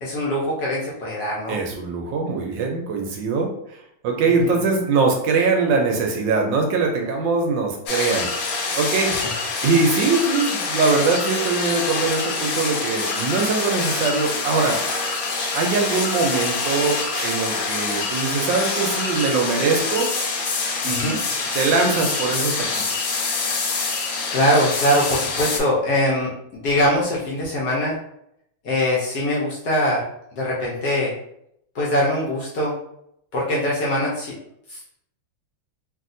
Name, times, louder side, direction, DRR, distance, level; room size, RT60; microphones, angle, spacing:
voice 1, 0.0-1.6 4.4-4.5 9.1-9.3 20.9-21.2 24.3-26.3 26.6-28.0 28.6-30.0 30.4-31.1 31.7-32.7 33.3-34.3 34.7-35.0, equal, 65° left, -4 dB, 1.0 m, -22 dB
voice 2, 1.5-3.8 4.0-8.3 8.8-9.1 9.6-14.8 15.5-20.1 20.8-21.2 21.5-22.8, right 4 dB, 75° right, 2 dB, 1.2 m, -22 dB
sound 1, 7.9-25.6, left 4 dB, 80° left, 1.4 m, -25 dB
sound 2, 8.1-9.0 10.5-11.6 11.9-12.0 13.4-13.5 13.7-14.3 15.1-16.1 16.6-17.3 18.0-19.5 19.9-21.4, equal, 20° right, 1.2 m, -40 dB
3.0 x 2.7 x 2.5 m, 0.75 s
omnidirectional pair, 2.2 m